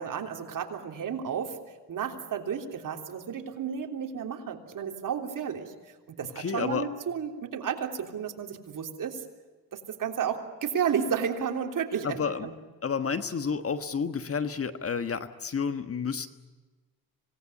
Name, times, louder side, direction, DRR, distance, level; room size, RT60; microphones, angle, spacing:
voice 1, 0.0-1.6 1.9-5.7 6.1-9.2 9.7-12.5, right 7 dB, 55° right, 4 dB, 3.4 m, -32 dB
voice 2, 6.3-6.9 12.0-12.5 12.8-16.3, left 6 dB, 35° left, 11 dB, 1.4 m, -30 dB
26.0 x 19.0 x 9.8 m, 1.3 s
cardioid pair, 100°, 38 cm